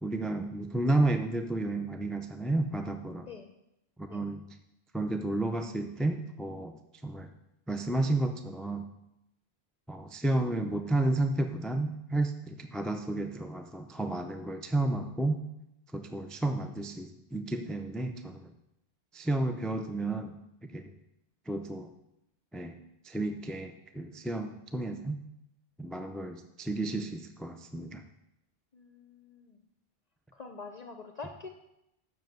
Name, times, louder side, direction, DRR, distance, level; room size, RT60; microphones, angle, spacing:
voice 1, 0.0-3.3 4.0-4.4 4.9-7.3 7.7-8.9 9.9-15.4 15.9-18.5 19.1-20.8 21.5-21.9 22.5-22.8 23.0-25.2 25.8-28.0, right 2 dB, ahead, 6 dB, 0.3 m, -32 dB
voice 2, 3.2-3.5 4.1-4.2 24.4-24.6 28.7-29.6 30.3-31.5, left 4 dB, 45° left, 5 dB, 0.7 m, -46 dB
7.3 x 6.2 x 7.8 m, 0.86 s
omnidirectional pair, 1.1 m